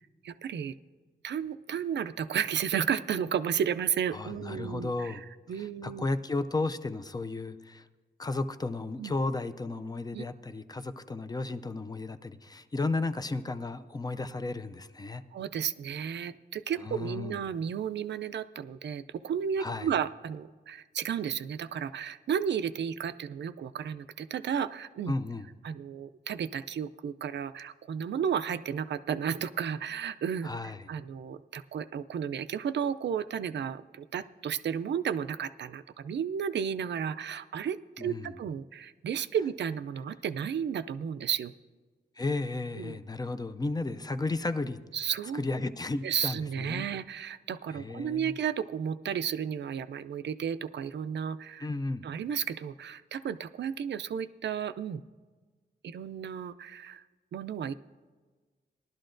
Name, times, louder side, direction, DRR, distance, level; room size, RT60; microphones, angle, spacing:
voice 1, 0.2-0.7 1.2-5.2 5.5-6.0 9.0-9.1 10.1-10.2 15.3-25.1 25.6-30.5 30.9-41.5 42.8-43.0 44.9-45.4 46.0-51.7 52.0-55.0 55.8-57.0 57.3-57.7, right 8 dB, 75° right, 12 dB, 0.4 m, -33 dB
voice 2, 4.1-5.2 5.5-7.9 8.2-15.2 16.8-17.4 19.6-19.9 25.1-25.5 30.4-30.9 38.0-38.3 42.2-44.8 45.3-46.9 47.7-48.3 51.6-52.1, left 3 dB, 20° left, 10 dB, 0.4 m, -34 dB
19.0 x 12.0 x 2.6 m, 1.4 s
wide cardioid pair, 175°, 18 cm